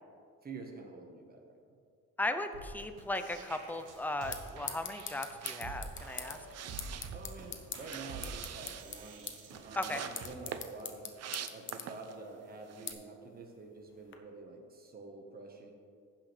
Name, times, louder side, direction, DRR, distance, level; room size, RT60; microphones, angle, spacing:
voice 1, 0.4-1.6 7.1-9.3 9.6-11.1 11.5-15.7, right 3 dB, 30° right, 1 dB, 1.3 m, -48 dB
voice 2, 2.2-6.5 9.8-10.0, left 1 dB, 5° left, 8 dB, 0.6 m, -37 dB
sound 1, 2.5-10.3, right 3 dB, 85° right, 1.3 m, -48 dB
sound 2, 3.7-14.2, left 6 dB, 40° left, 1.0 m, -46 dB
sound 3, 5.4-12.3 12.6-12.9, right 9 dB, 55° right, 0.6 m, -45 dB
15.0 x 5.8 x 3.4 m, 2.3 s
cardioid pair, 90°, 30 cm